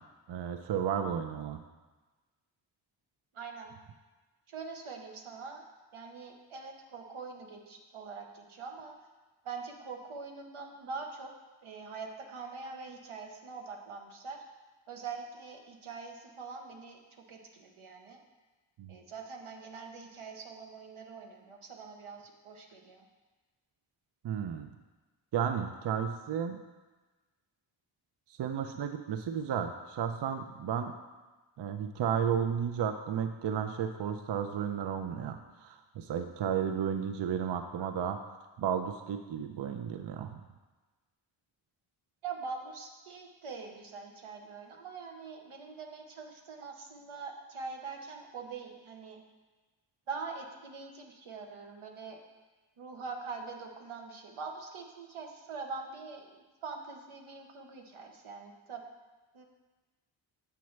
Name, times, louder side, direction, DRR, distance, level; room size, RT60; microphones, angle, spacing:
voice 1, 0.3-1.6 18.8-19.0 24.2-24.7 25.3-26.6 28.3-30.9 31.6-38.2 38.6-40.4, right 8 dB, 60° right, 7 dB, 0.5 m, -33 dB
voice 2, 3.3-3.7 4.5-5.6 5.9-8.9 9.4-11.3 11.6-14.4 14.9-18.2 18.9-23.0 42.2-49.2 50.1-52.2 52.8-58.8 59.3-59.5, right 4 dB, 90° right, 2 dB, 0.9 m, -43 dB
6.9 x 5.8 x 3.1 m, 1.2 s
wide cardioid pair, 65°, 48 cm